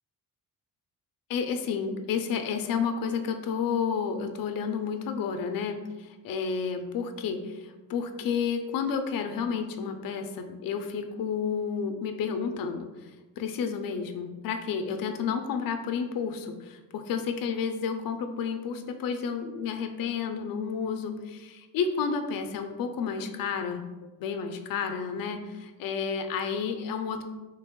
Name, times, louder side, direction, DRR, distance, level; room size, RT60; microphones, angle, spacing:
voice 1, 1.3-13.1 13.4-23.9 24.2-27.2, left 6 dB, 75° left, 7 dB, 0.5 m, -31 dB
3.3 x 3.0 x 3.6 m, 1.2 s
cardioid pair, 165°, 35 cm